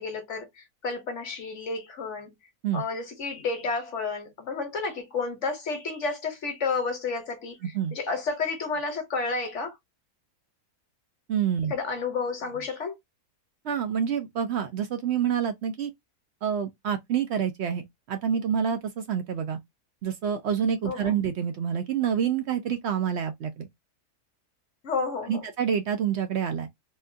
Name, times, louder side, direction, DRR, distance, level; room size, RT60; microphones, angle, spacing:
voice 1, 0.0-2.4 2.7-9.8 11.7-12.9 20.8-21.2 24.8-25.4, left 4 dB, 55° left, 1.1 m, -31 dB
voice 2, 11.3-11.7 13.6-15.9 16.4-17.8 18.1-19.6 20.0-23.7 25.3-26.7, right 8 dB, 65° right, 0.7 m, -27 dB
3.5 x 2.2 x 2.6 m
omnidirectional pair, 1.6 m